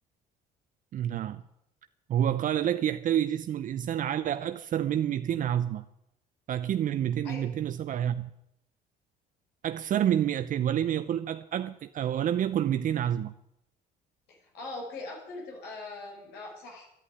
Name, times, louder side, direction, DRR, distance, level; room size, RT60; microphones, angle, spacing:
voice 1, 0.9-1.4 2.1-5.8 6.5-8.3 9.6-13.3, right 10 dB, 50° right, 0.7 m, -28 dB
voice 2, 14.3-16.9, left 2 dB, 80° left, 5.6 m, -41 dB
11.0 x 10.5 x 9.9 m
cardioid pair, 110°, 17 cm